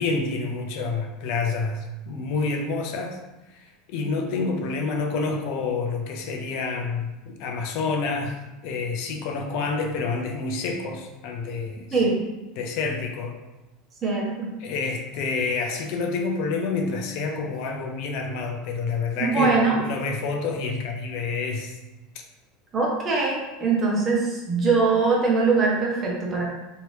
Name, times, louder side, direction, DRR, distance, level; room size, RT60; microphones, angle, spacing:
voice 1, 0.0-3.2 3.5-12.0 12.6-13.4 14.6-21.8, left 4 dB, 65° left, 3 dB, 0.5 m, -28 dB
voice 2, 11.9-12.2 14.0-14.5 19.2-19.8 22.7-26.4, right 4 dB, 30° right, -3 dB, 1.0 m, -22 dB
2.9 x 2.7 x 3.2 m, 1.0 s
supercardioid pair, 110°, 0 cm